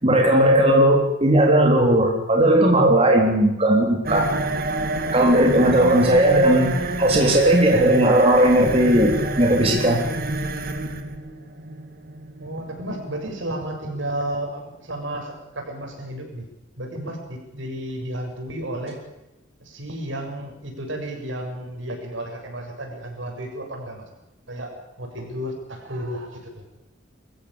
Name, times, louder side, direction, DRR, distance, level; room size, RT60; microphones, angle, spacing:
voice 1, 0.0-4.3 5.1-10.1, right 1 dB, 30° right, 1 dB, 3.7 m, -17 dB
sound 1, 4.0-13.7, right 2 dB, 50° right, 2.4 m, -29 dB
voice 2, 12.4-16.5 16.8-19.0 19.7-24.0 24.5-24.7 25.0-26.5, right 1 dB, 75° right, 2 dB, 7.2 m, -32 dB
23.5 x 15.5 x 8.7 m, 0.96 s
head